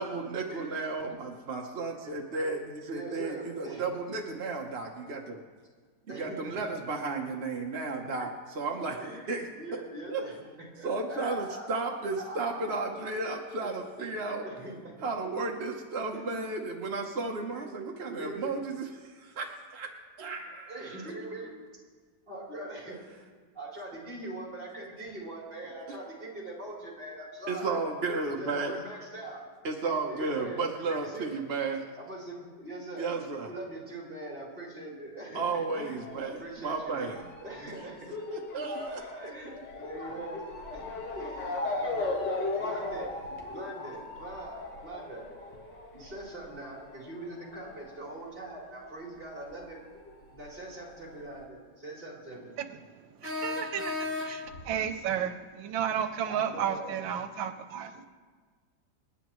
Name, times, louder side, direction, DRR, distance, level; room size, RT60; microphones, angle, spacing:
voice 1, 0.0-5.4 6.1-9.0 9.3-9.4 9.7-9.8 10.1-10.2 10.8-14.4 15.0-19.9 20.2-21.1 27.5-28.7 29.6-31.8 33.0-33.5 35.3-37.2 38.3-39.0, right 3 dB, 45° right, 1 dB, 1.0 m, -33 dB
voice 2, 2.9-3.9 6.1-6.6 9.0-10.4 10.8-13.0 14.0-14.1 14.4-15.0 16.1-16.3 18.0-18.5 20.5-21.5 22.2-23.0 23.5-27.8 28.2-29.4 30.0-30.7 31.0-31.4 32.0-33.1 33.4-37.0 37.4-38.2 38.5-40.4 40.7-42.3 42.6-43.1 43.5-45.3 45.9-49.8 50.3-52.6 56.2-57.0, right 1 dB, 30° right, -5 dB, 3.9 m, -42 dB
Motor vehicle (road) / Siren, 36.0-49.0 49.2-50.4 51.1-51.2 51.4-51.5, left 2 dB, 65° left, 2.1 m, -38 dB
sound 1, 53.2-54.6, left 3 dB, 80° left, 6.2 m, -34 dB
voice 3, 53.2-58.1, right 8 dB, 90° right, 8 dB, 1.5 m, -33 dB
27.5 x 9.7 x 3.1 m, 1.5 s
omnidirectional pair, 2.0 m